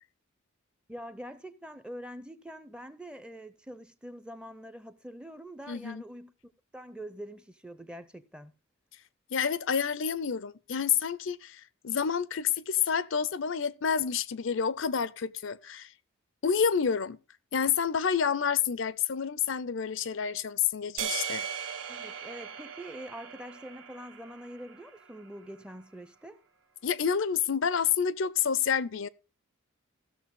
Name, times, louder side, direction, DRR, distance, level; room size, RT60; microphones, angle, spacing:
voice 1, 0.9-8.5 21.9-26.4, equal, 5° right, 0.6 m, -45 dB
voice 2, 5.7-6.0 9.3-15.9 16.4-17.2 17.5-21.5 26.8-29.1, left 7 dB, 60° left, 0.5 m, -29 dB
sound 1, 21.0-25.3, right 8 dB, 65° right, 1.3 m, -38 dB
16.0 x 6.7 x 3.6 m
head